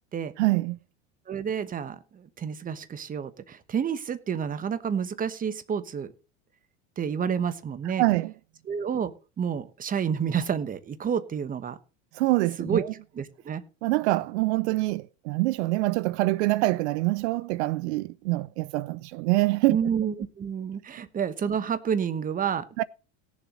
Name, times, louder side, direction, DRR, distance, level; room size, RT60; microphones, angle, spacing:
voice 1, 0.4-0.8 8.0-8.3 12.1-12.9 13.8-19.8 22.8-22.9, right 19 dB, 75° right, 0.5 m, -25 dB
voice 2, 1.3-6.1 7.0-8.0 8.7-11.8 12.6-12.8 13.1-13.6 19.7-22.8, right 7 dB, 25° right, 1.1 m, -29 dB
17.5 x 7.2 x 3.9 m
supercardioid pair, 110°, 34 cm